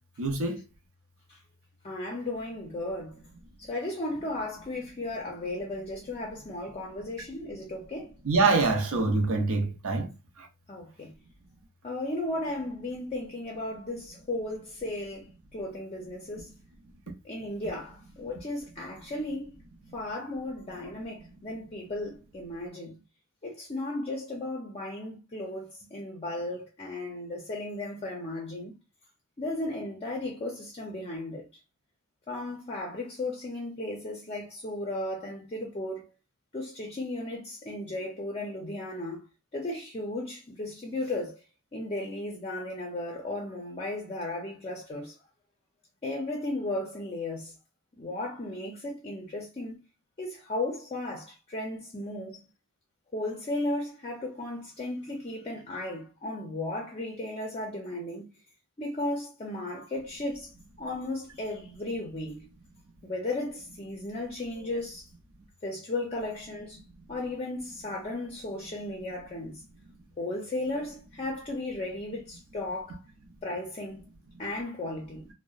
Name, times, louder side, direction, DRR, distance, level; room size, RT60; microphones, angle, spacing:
voice 1, 0.2-0.6 8.3-10.1, right 3 dB, 65° right, 0.6 m, -25 dB
voice 2, 1.8-3.2 3.6-8.2 10.7-11.1 11.8-16.5 17.2-19.5 19.9-23.0 23.4-28.8 29.4-31.5 32.3-36.1 36.5-39.3 39.5-41.4 41.7-45.2 46.0-47.5 48.0-49.8 50.2-52.4 53.1-58.3 58.8-60.5 60.8-62.5 63.0-65.1 65.6-69.6 70.2-73.0 73.4-74.1 74.4-75.3, left 2 dB, 30° left, 0.5 m, -35 dB
2.8 x 2.1 x 2.3 m
head